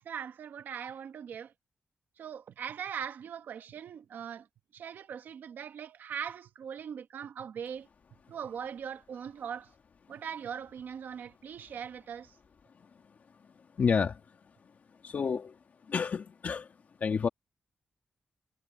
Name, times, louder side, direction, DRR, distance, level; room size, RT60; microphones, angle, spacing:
voice 1, 0.0-1.5 2.2-4.5 4.7-7.9 8.3-9.7 10.1-12.4, right 8 dB, 80° right, 1.0 m, -40 dB
voice 2, 13.7-14.2 15.0-15.6 15.9-17.3, left 6 dB, 55° left, 1.9 m, -30 dB
wide cardioid pair, 110°, 3 cm